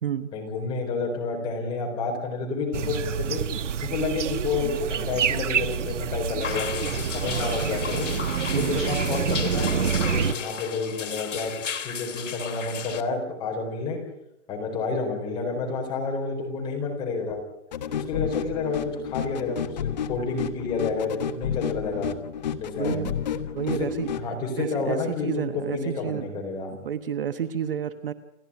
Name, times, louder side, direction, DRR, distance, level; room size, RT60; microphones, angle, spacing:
voice 1, 0.3-3.4 3.8-8.1 8.5-11.5 11.8-14.0 14.5-17.4 17.9-22.1 22.6-23.1 23.8-23.9 24.1-26.7, left 4 dB, 10° left, 1 dB, 4.4 m, -30 dB
sound 1, 2.7-10.3, right 8 dB, 75° right, 1.3 m, -27 dB
sound 2, 6.4-13.0, left 7 dB, 80° left, 3.0 m, -34 dB
voice 2, 8.5-8.8 22.8-23.1 23.5-24.1 24.6-26.2 26.7-28.1, right 8 dB, 50° right, 11 dB, 1.2 m, -30 dB
sound 3, 17.7-24.3, left 8 dB, 35° left, 1.4 m, -31 dB
29.0 x 12.5 x 9.7 m, 0.85 s
hypercardioid pair, 180°, 36 cm